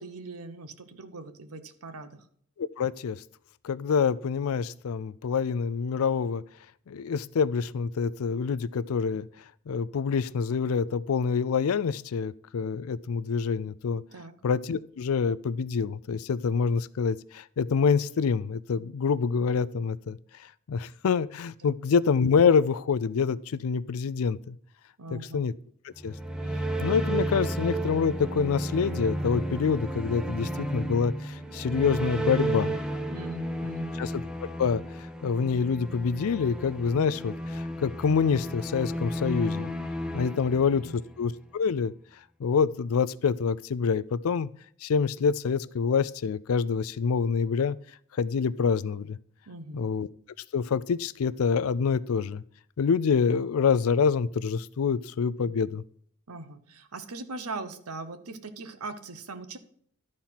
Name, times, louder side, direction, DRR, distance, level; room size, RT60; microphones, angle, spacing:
voice 1, 0.0-2.2 14.1-14.4 21.6-21.8 25.0-25.4 33.1-34.0 40.4-41.0 49.5-49.8 56.3-59.6, right 3 dB, 90° right, 10 dB, 0.9 m, -41 dB
voice 2, 2.6-3.2 3.6-6.4 6.9-9.3 9.7-14.0 14.4-20.2 20.7-24.6 25.1-25.5 25.8-26.1 26.8-32.7 34.0-34.2 34.6-39.7 40.1-41.9 42.4-44.5 44.8-47.8 48.2-49.2 49.7-50.1 50.5-52.4 52.8-55.8, left 6 dB, 75° left, 17 dB, 0.4 m, -26 dB
sound 1, 26.0-41.2, right 1 dB, 5° right, 0.6 m, -32 dB
12.0 x 4.3 x 5.7 m, 0.62 s
head